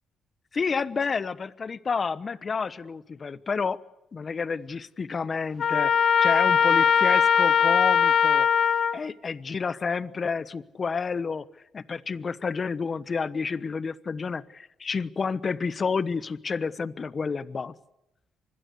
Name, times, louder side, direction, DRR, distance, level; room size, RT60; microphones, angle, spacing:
voice 1, 0.5-3.8 4.1-8.5 8.9-11.5 11.7-17.7, left 5 dB, 40° left, 17 dB, 1.1 m, -30 dB
Trumpet, 5.6-9.0, left 7 dB, 55° left, 1.4 m, -20 dB
25.0 x 21.0 x 8.2 m, 0.89 s
cardioid pair, 90°, 0 cm